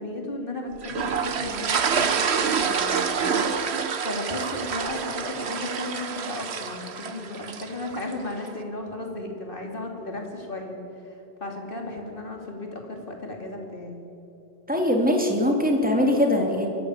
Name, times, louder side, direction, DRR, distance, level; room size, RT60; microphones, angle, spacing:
voice 1, 0.0-3.5 4.0-11.1 11.4-14.0, left 2 dB, 55° left, 2 dB, 3.2 m, -35 dB
sound 1, 0.8-8.1, right 6 dB, 80° right, 1.3 m, -27 dB
voice 2, 14.7-16.7, left 1 dB, 10° right, 1 dB, 2.8 m, -21 dB
22.5 x 15.0 x 8.3 m, 2.9 s
omnidirectional pair, 1.1 m